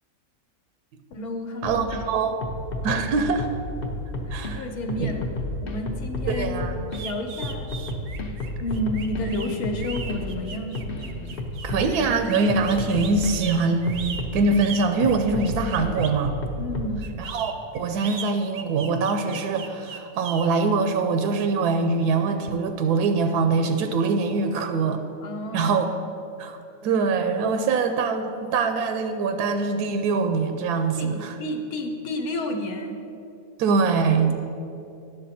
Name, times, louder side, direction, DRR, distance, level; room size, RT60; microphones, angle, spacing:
voice 1, 1.1-1.9 4.3-5.3 5.6-6.7 7.0-7.7 8.6-10.7 16.6-17.0 25.2-25.9 31.0-31.1 31.4-33.0, left 1 dB, 75° left, 4 dB, 1.2 m, -30 dB
sound 1, 1.6-2.0 2.4-4.5 4.9-7.0 7.4-12.1 12.5-13.4 13.9-14.6 15.0-16.9, left 1 dB, 50° left, 0.8 m, -32 dB
voice 2, 1.6-2.3 2.8-3.5 4.3-4.7 5.0-5.1 6.3-7.0 11.6-16.4 17.2-25.0 25.5-25.9 26.4-31.3 33.6-34.3, right 4 dB, 85° right, 7 dB, 1.1 m, -23 dB
sound 2, 6.9-16.2 17.0-20.5, right 6 dB, 60° right, 0.6 m, -38 dB
10.0 x 6.6 x 4.2 m, 2.7 s
omnidirectional pair, 1.6 m